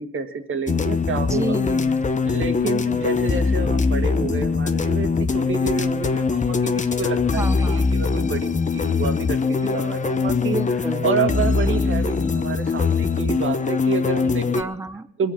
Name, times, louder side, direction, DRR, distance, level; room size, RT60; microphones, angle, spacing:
voice 1, 0.0-1.6 2.3-10.6 11.0-14.7 15.2-15.3, right 5 dB, 45° right, 6 dB, 1.8 m, -29 dB
sound 1, 0.7-14.6, left 4 dB, 25° left, 0.8 m, -22 dB
voice 2, 1.3-2.0 7.3-7.9 10.5-11.1 14.6-15.1, right 2 dB, 10° right, 13 dB, 0.7 m, -30 dB
21.5 x 7.9 x 5.9 m, 0.76 s
cardioid pair, 90°, 30 cm